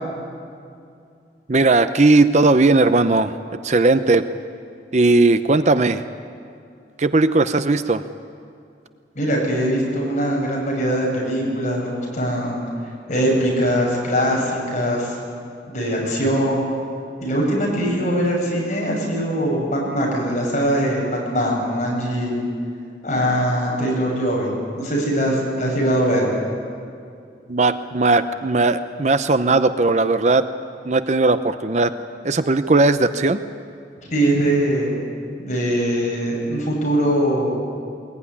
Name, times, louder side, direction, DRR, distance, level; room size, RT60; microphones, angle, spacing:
voice 1, 1.5-3.3 3.6-4.3 4.9-6.0 7.0-8.0 27.5-30.5 30.8-31.9 32.2-33.4, right 3 dB, 40° right, 11 dB, 0.7 m, -17 dB
voice 2, 9.1-12.6 13.1-15.2 15.7-16.7 17.2-22.4 23.0-26.3 34.1-34.9 35.4-37.6, equal, 45° left, -2 dB, 7.8 m, -21 dB
21.5 x 21.0 x 9.9 m, 2.4 s
head